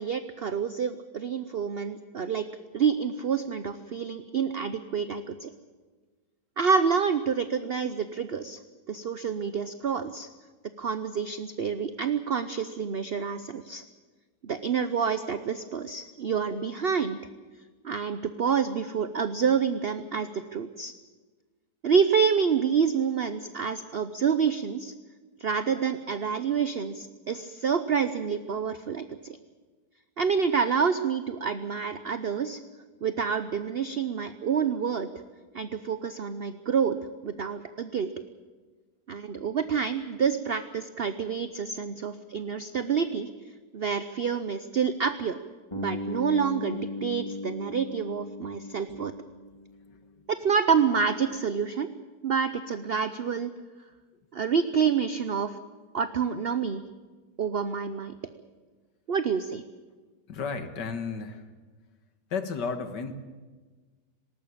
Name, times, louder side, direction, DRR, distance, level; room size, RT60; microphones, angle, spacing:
voice 1, 0.0-2.5 2.7-5.5 6.6-8.6 8.9-10.3 10.8-13.8 14.4-17.2 17.8-20.9 21.8-24.9 25.4-29.4 30.2-32.6 33.0-35.1 35.5-37.0 37.2-38.1 39.1-43.3 43.7-45.4 45.8-49.1 50.3-51.9 52.2-53.5 54.3-55.6 55.9-56.8 57.4-58.1 59.1-59.6, right 6 dB, 50° right, 11 dB, 0.8 m, -28 dB
Bass guitar, 45.7-49.8, left 1 dB, 15° left, 3.4 m, -37 dB
voice 2, 60.3-61.5 62.3-63.1, left 5 dB, 85° left, 9 dB, 2.3 m, -33 dB
19.5 x 18.5 x 8.7 m, 1.4 s
omnidirectional pair, 1.8 m